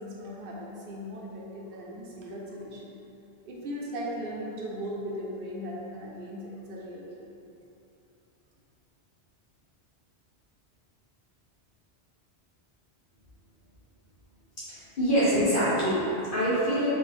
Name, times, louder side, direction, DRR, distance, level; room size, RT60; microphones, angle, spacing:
voice 1, 0.0-2.9 3.5-7.3, equal, 65° right, -4 dB, 0.7 m, -38 dB
voice 2, 14.7-16.9, equal, 55° left, -11 dB, 0.9 m, -25 dB
2.7 x 2.4 x 3.1 m, 2.8 s
omnidirectional pair, 1.1 m